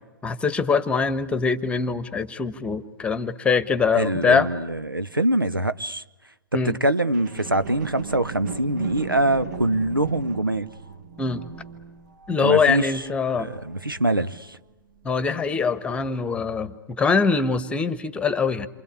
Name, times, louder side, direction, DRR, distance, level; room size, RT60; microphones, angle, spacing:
voice 1, 0.2-4.5 6.5-6.8 11.2-11.4 12.3-13.5 15.0-18.7, left 5 dB, 10° left, 1.2 m, -23 dB
voice 2, 3.9-6.0 6.6-10.7 12.4-12.9 13.4-14.6, right 1 dB, 90° right, 1.0 m, -24 dB
sound 1, 7.1-14.6 15.1-15.2, right 5 dB, 60° right, 2.4 m, -38 dB
28.5 x 24.5 x 8.4 m
figure-of-eight pair, 110°, 11 cm